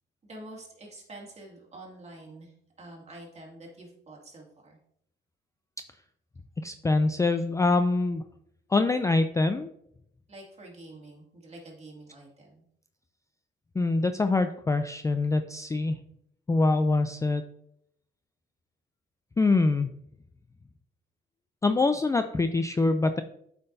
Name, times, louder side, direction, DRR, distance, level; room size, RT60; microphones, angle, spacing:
voice 1, 0.2-4.8 10.3-12.6, right 1 dB, 35° right, -2 dB, 2.3 m, -47 dB
voice 2, 6.6-8.2 8.7-9.7 13.8-16.0 16.5-17.4 19.4-19.9 21.6-23.2, left 3 dB, 15° left, 8 dB, 0.3 m, -24 dB
7.8 x 5.6 x 2.6 m, 0.72 s
cardioid pair, 90°, 20 cm